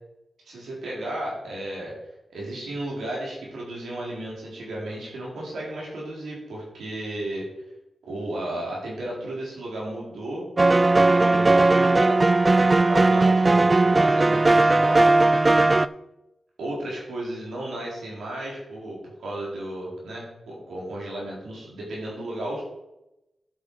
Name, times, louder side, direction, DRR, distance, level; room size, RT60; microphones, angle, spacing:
voice 1, 0.4-1.9 2.3-7.5 8.0-10.4 10.9-12.2 12.7-15.1 16.6-22.6, right 1 dB, 90° right, -4 dB, 4.0 m, -34 dB
sound 1, 10.6-15.9, right 2 dB, 35° right, 0.4 m, -18 dB
11.5 x 5.9 x 4.9 m, 0.91 s
cardioid pair, 45°, 0 cm